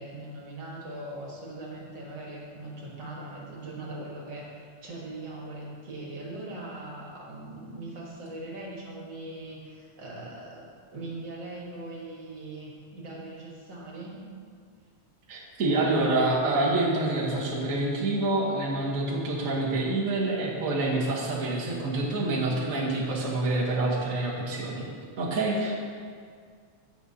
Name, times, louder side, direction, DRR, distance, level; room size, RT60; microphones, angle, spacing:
voice 1, 0.0-14.3, right 2 dB, 45° right, -3 dB, 1.7 m, -40 dB
voice 2, 15.3-24.9 25.2-25.8, right 2 dB, 70° right, -4 dB, 0.8 m, -27 dB
17.5 x 6.2 x 2.8 m, 2.1 s
omnidirectional pair, 3.5 m